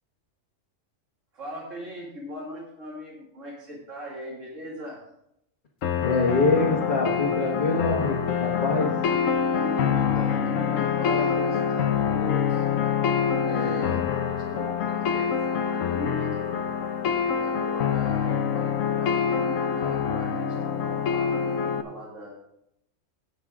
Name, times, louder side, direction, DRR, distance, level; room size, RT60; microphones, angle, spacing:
voice 1, 1.3-5.0 9.5-12.7 13.4-16.4 17.3-22.3, equal, 75° right, -4 dB, 2.7 m, -39 dB
sound 1, 5.8-21.8, left 7 dB, 85° left, 1.2 m, -25 dB
voice 2, 6.0-9.0 13.6-14.0, left 3 dB, 40° left, -3 dB, 1.6 m, -25 dB
18.0 x 6.1 x 3.7 m, 0.79 s
omnidirectional pair, 1.3 m